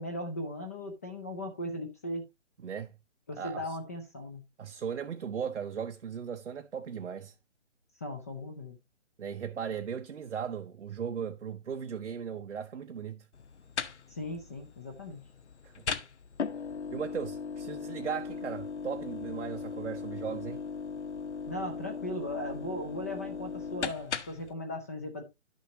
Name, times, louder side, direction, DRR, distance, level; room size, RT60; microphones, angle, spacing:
voice 1, 0.0-2.3 3.3-4.4 8.0-8.8 14.1-15.2 21.5-25.2, left 1 dB, 15° left, 0.5 m, -38 dB
voice 2, 2.6-3.0 3.4-3.8 4.6-7.3 9.2-13.3 15.6-15.7 16.9-20.6, right 7 dB, 75° right, 0.8 m, -37 dB
sound 1, 13.3-24.5, left 5 dB, 70° left, 1.0 m, -38 dB
11.5 x 6.3 x 2.8 m
figure-of-eight pair, 145°, 36 cm